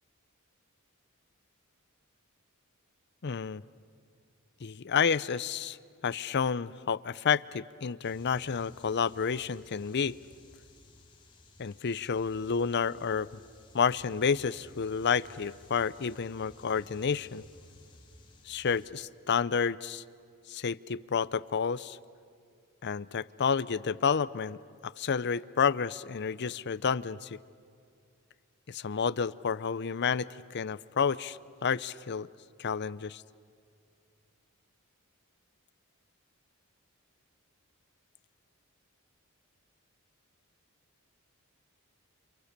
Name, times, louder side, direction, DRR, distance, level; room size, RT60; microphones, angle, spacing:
voice 1, 3.2-3.6 4.6-5.8 6.0-10.2 11.6-13.3 13.7-17.4 18.5-20.0 20.5-22.0 22.8-24.6 24.8-27.4 28.7-32.3 32.6-33.2, left 6 dB, 55° left, 17 dB, 0.6 m, -30 dB
sound 1, 8.0-18.9, left 2 dB, 25° left, 3.2 m, -57 dB
28.5 x 28.5 x 6.7 m, 2.3 s
head